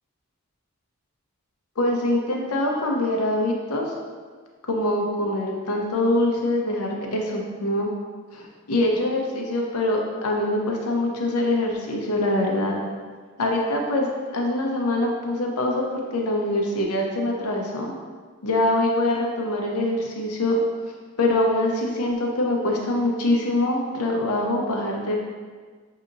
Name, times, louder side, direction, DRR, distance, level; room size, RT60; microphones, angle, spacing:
voice 1, 1.8-3.9 4.7-7.9 8.3-12.8 13.4-18.0 18.4-20.6 21.2-25.2, left 1 dB, 85° left, 0 dB, 0.7 m, -24 dB
6.3 x 2.8 x 2.6 m, 1.5 s
head